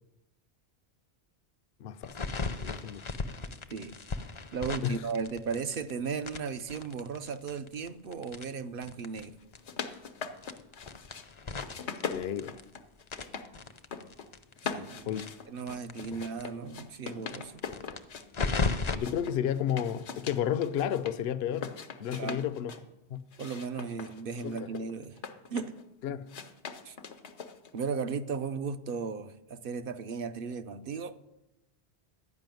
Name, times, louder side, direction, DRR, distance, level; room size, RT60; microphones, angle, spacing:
voice 1, 1.8-2.1 2.6-3.1 4.8-5.0 12.1-12.6 15.1-15.3 16.1-16.2 18.9-22.7 23.1-23.2 24.4-24.6 26.0-26.3, left 10 dB, 70° left, 0.8 m, -32 dB
sound 1, 2.0-5.9 6.2-9.3 9.5-9.6 9.9-10.0 10.4-12.8 13.1-16.1 16.4-16.5 16.7-16.8 17.2-19.0, left 4 dB, 35° left, 0.6 m, -36 dB
voice 2, 4.5-9.4 14.6-15.2 15.5-17.5 22.1-22.5 23.4-25.2 25.5-25.8 26.8-27.0 27.7-31.2, right 5 dB, 60° right, 0.8 m, -36 dB
sound 2, 9.4-11.3 11.6-13.5 13.8-14.3 14.6-18.6 18.9-21.2 21.5-22.8 23.3-25.8 26.3-27.8, left 6 dB, 85° left, 1.2 m, -41 dB
12.0 x 5.6 x 9.1 m
omnidirectional pair, 1.1 m